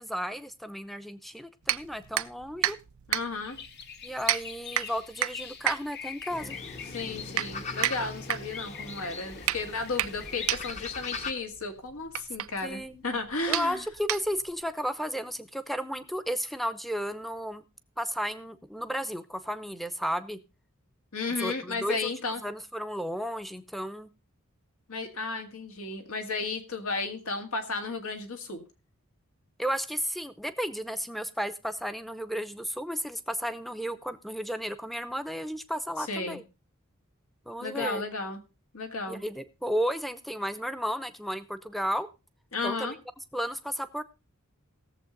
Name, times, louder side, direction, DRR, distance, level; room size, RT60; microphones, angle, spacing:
voice 1, 0.0-2.8 4.0-6.5 12.6-13.0 13.5-17.6 18.0-20.4 21.3-22.1 22.4-24.1 29.6-36.4 37.5-38.0 39.1-42.1 42.6-42.9 43.3-44.0, equal, ahead, 10 dB, 0.6 m, -33 dB
sound 1, 1.6-14.6, right 12 dB, 80° right, 0.5 m, -33 dB
voice 2, 3.1-3.6 6.9-13.8 21.1-22.4 24.9-28.6 36.1-36.4 37.6-38.4 38.7-39.2 42.5-43.0, left 3 dB, 85° left, 6 dB, 1.9 m, -33 dB
sound 2, 3.4-10.7, left 7 dB, 50° left, 1.0 m, -45 dB
sound 3, 6.3-11.3, left 4 dB, 35° left, 0.9 m, -40 dB
17.5 x 7.3 x 3.9 m, 0.29 s
head